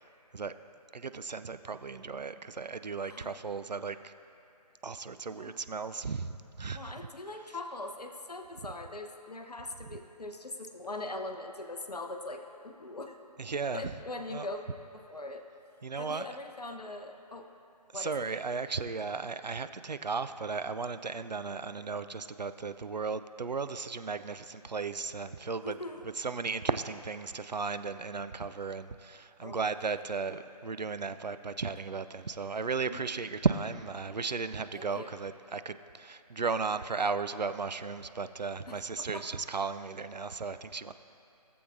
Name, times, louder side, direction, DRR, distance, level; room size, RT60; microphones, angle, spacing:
voice 1, 0.9-4.1 4.8-7.0 9.9-10.0 13.4-13.9 14.3-14.5 15.8-16.3 17.9-25.8 26.0-40.9, right 4 dB, 85° right, 11 dB, 0.4 m, -35 dB
voice 2, 3.0-3.3 5.3-5.6 6.7-13.2 13.7-14.6 14.9-15.4 16.0-17.5 17.9-18.1 25.6-26.1 29.4-29.7 32.9-33.1 34.8-35.2 38.7-39.2, left 2 dB, 70° left, 5 dB, 0.7 m, -41 dB
17.0 x 7.6 x 2.6 m, 2.7 s
figure-of-eight pair, 155°, 21 cm